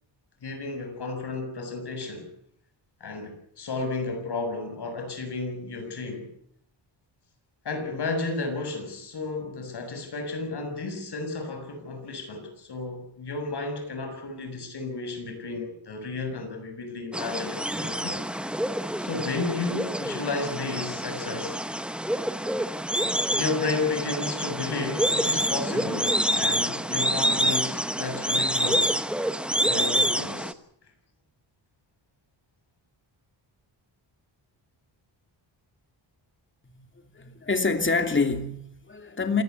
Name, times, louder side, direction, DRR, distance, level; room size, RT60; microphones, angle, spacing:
voice 1, 0.4-2.3 3.0-6.3 7.7-18.2 19.0-21.6 23.3-29.0 29.6-30.6, left 3 dB, 60° left, 7.1 m, -32 dB
sound 1, 17.1-30.5, equal, ahead, 1.1 m, -27 dB
voice 2, 37.1-39.4, left 4 dB, 25° left, 2.9 m, -26 dB
27.0 x 17.5 x 8.3 m
wide cardioid pair, 125°, 46 cm